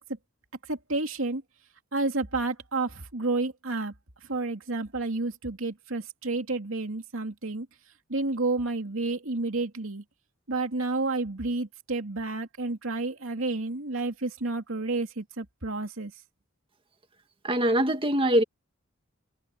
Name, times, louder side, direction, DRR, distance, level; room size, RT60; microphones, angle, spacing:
voice 1, 0.7-1.4 1.9-3.9 4.3-7.7 8.1-10.0 10.5-16.1, right 3 dB, 80° right, 2.7 m, -30 dB
voice 2, 17.4-18.4, right 1 dB, 25° right, 1.8 m, -23 dB
head